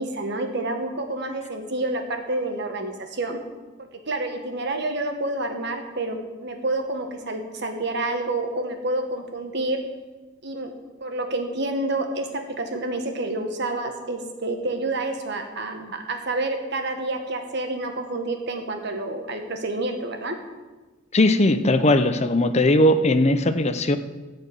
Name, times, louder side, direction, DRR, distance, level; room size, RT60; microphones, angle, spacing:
voice 1, 0.0-3.4 3.8-9.8 10.4-10.7 11.0-20.4, right 2 dB, 60° right, 4 dB, 1.5 m, -28 dB
voice 2, 21.1-24.0, left 1 dB, 35° left, 10 dB, 0.7 m, -19 dB
13.5 x 5.0 x 8.5 m, 1.2 s
head